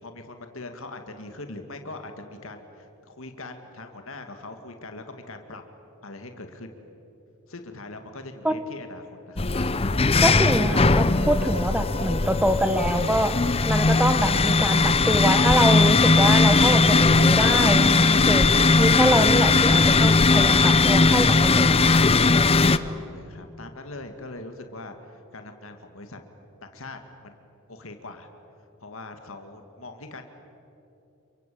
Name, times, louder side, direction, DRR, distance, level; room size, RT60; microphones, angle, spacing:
voice 1, 0.0-5.6 6.0-6.7 7.5-10.6 11.4-11.5 22.4-26.2 26.6-27.4 27.7-28.3 28.8-30.2, left 2 dB, 65° left, 6 dB, 2.2 m, -41 dB
sound 1, 9.4-22.8, left 3 dB, 25° left, 0.7 m, -19 dB
voice 2, 10.2-13.3 13.6-18.5 18.8-22.0, equal, 5° right, 9 dB, 1.4 m, -25 dB
28.5 x 24.0 x 8.7 m, 2.9 s
head